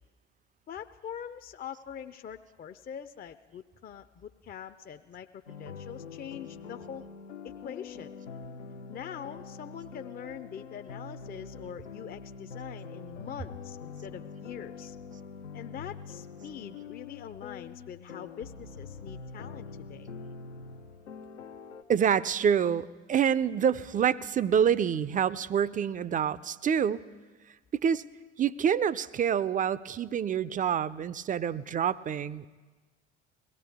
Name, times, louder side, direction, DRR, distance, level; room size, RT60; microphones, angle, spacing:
voice 1, 0.7-7.0 7.6-8.1 8.9-15.0 15.5-20.1, left 8 dB, 25° left, 9 dB, 0.6 m, -43 dB
sound 1, 5.5-21.8, left 5 dB, 85° left, 0.8 m, -44 dB
voice 2, 21.9-27.0 27.7-28.0 28.4-32.5, right 8 dB, 25° right, 20 dB, 0.5 m, -27 dB
22.5 x 17.5 x 3.5 m, 1.3 s
figure-of-eight pair, 65°, 36 cm